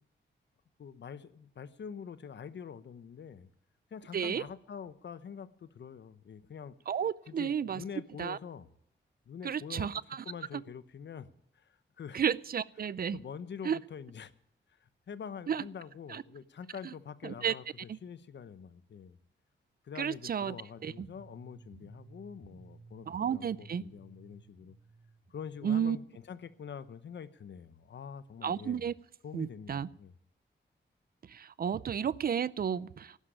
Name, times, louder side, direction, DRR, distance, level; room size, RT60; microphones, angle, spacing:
voice 1, 0.8-3.5 3.9-6.8 7.3-8.7 9.3-11.3 11.5-12.2 12.8-14.3 14.7-19.2 19.8-24.8 25.3-28.9 29.2-30.1, left 7 dB, 65° left, 14 dB, 0.9 m, -45 dB
voice 2, 4.1-4.4 6.9-7.8 8.2-8.4 9.4-10.2 12.1-13.2 13.6-13.8 15.5-15.6 16.1-16.2 17.2-17.5 17.9-18.0 20.0-20.6 20.8-21.1 23.1-23.8 25.6-26.0 28.4-28.9 29.3-29.9 31.3-33.2, right 8 dB, 50° right, 20 dB, 0.5 m, -32 dB
sound 1, 20.8-26.7, right 4 dB, 80° right, 1.7 m, -57 dB
12.0 x 10.0 x 10.0 m, 0.74 s
wide cardioid pair, 140°, 20 cm